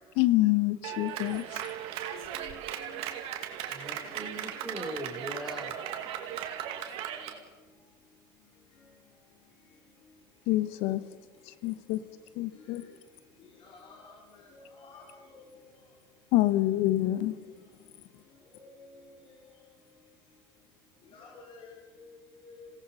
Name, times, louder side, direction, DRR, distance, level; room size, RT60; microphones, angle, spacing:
voice 1, 0.2-1.6 10.5-11.0 11.6-12.0 12.4-12.8 16.3-17.4, left 16 dB, 70° left, 1.2 m, -26 dB
Clapping, 0.8-7.4, right 10 dB, 65° right, 2.4 m, -37 dB
voice 2, 2.1-2.6 13.6-15.4 18.7-19.1 21.1-22.1 22.4-22.7, left 4 dB, 50° left, 3.8 m, -51 dB
voice 3, 3.7-5.8, right 1 dB, 5° right, 4.4 m, -40 dB
27.0 x 18.0 x 5.9 m
hypercardioid pair, 85°, 11 cm